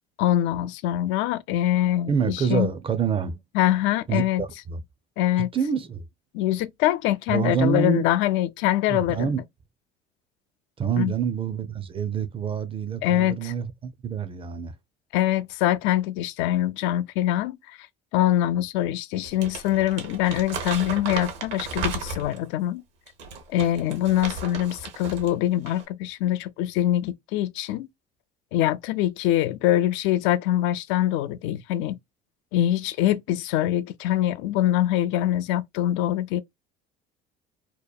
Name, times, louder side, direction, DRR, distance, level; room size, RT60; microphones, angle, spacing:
voice 1, 0.2-2.7 3.5-4.4 5.2-5.5 6.3-9.3 11.0-11.1 13.0-13.5 15.1-17.8 18.1-22.8 23.5-27.9 28.5-32.0 32.5-36.4, left 13 dB, 75° left, 0.4 m, -24 dB
voice 2, 2.1-3.4 4.1-4.8 5.4-6.0 7.3-8.1 8.9-9.4 10.8-14.7, right 7 dB, 25° right, 0.5 m, -27 dB
Crumpling crinkling, 19.2-22.5 23.1-25.3 25.6-25.8, right 4 dB, 70° right, 0.9 m, -34 dB
2.8 x 2.1 x 2.3 m
supercardioid pair, 85°, 20 cm